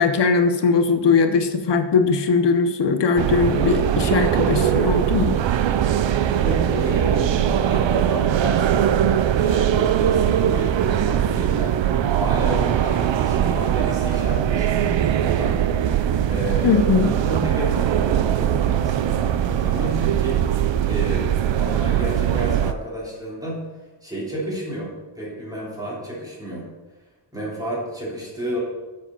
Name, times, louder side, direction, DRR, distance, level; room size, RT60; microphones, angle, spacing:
voice 1, 0.0-5.4 16.6-17.1, left 5 dB, 70° left, 8 dB, 0.9 m, -19 dB
sound 1, 3.2-22.7, right 10 dB, 90° right, 0.6 m, -21 dB
voice 2, 6.4-11.7 12.2-15.6 15.8-23.6 24.0-26.7 27.3-28.6, right 1 dB, 10° right, -6 dB, 3.3 m, -31 dB
7.9 x 7.5 x 5.5 m, 1.1 s
wide cardioid pair, 175°, 43 cm